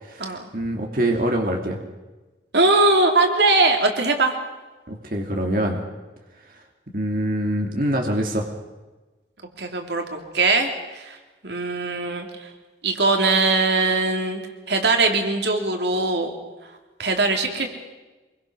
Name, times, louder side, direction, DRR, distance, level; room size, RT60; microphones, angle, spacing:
voice 1, 0.0-1.8 4.9-5.8 6.9-8.5, right 1 dB, 50° right, 1 dB, 2.8 m, -24 dB
voice 2, 2.5-4.3 9.6-11.2 11.4-12.5 12.8-14.4 14.7-16.3 17.0-17.7, right 3 dB, 80° right, 3 dB, 3.2 m, -21 dB
25.0 x 23.0 x 6.3 m, 1.2 s
head